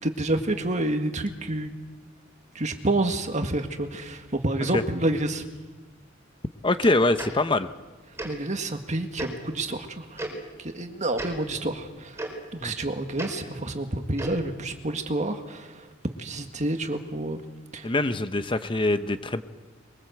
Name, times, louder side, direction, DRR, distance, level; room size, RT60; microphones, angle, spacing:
voice 1, 0.0-1.7 2.6-5.4 8.2-10.2 10.6-12.2 12.5-15.8 16.2-17.4 17.7-17.9, right 2 dB, 35° right, 6 dB, 1.8 m, -29 dB
voice 2, 6.6-7.7 12.6-12.7 17.8-19.4, left 2 dB, 25° left, 11 dB, 0.8 m, -24 dB
Tick-tock, 7.2-7.3 8.2-8.3 9.2-9.3 10.2-10.3 11.1-11.3 12.2-12.3 13.2-13.3 14.1-14.4, right 2 dB, 15° right, 4.9 m, -33 dB
23.0 x 22.5 x 8.0 m, 1.3 s
head